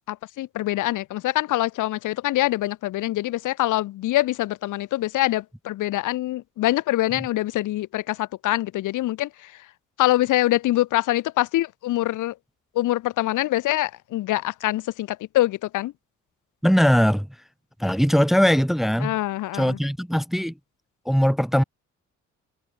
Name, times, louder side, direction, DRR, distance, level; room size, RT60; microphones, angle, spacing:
voice 1, 0.1-9.7 10.0-12.4 12.7-15.9 19.0-19.8, left 16 dB, 85° left, 2.0 m, -24 dB
voice 2, 16.6-17.3 17.8-19.1 19.5-20.5 21.1-21.6, equal, ahead, 0.9 m, -20 dB
cardioid pair, 90°, 30 cm